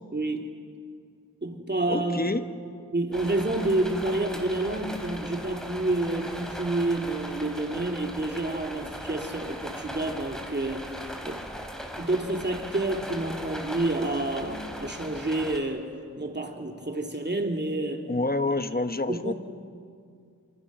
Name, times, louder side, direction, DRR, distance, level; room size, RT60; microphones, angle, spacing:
voice 1, 0.1-0.5 1.4-2.3 2.9-10.9 11.2-11.4 12.0-18.1 19.1-19.3, right 2 dB, 35° right, 3 dB, 2.8 m, -29 dB
voice 2, 1.9-2.4 18.1-19.3, left 2 dB, 30° left, 9 dB, 1.3 m, -27 dB
sound 1, 3.1-15.6, equal, ahead, 3.6 m, -39 dB
27.0 x 27.0 x 6.3 m, 2.3 s
wide cardioid pair, 65°, 31 cm